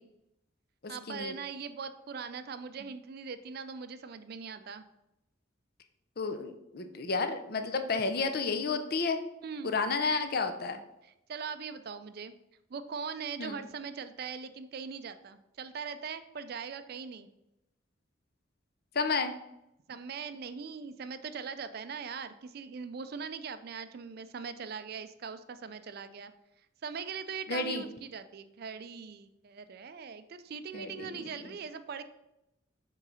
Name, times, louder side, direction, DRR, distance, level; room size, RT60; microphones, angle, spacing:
voice 1, 0.9-4.8 9.4-9.8 11.0-12.3 12.7-17.3 19.9-26.3 26.8-32.0, right 6 dB, 55° right, 12 dB, 0.4 m, -41 dB
voice 2, 6.2-9.2 9.6-10.8 13.4-13.6 18.9-19.3 27.5-27.8 30.7-31.3, left 4 dB, 50° left, 8 dB, 0.6 m, -31 dB
4.8 x 3.9 x 5.6 m, 0.87 s
head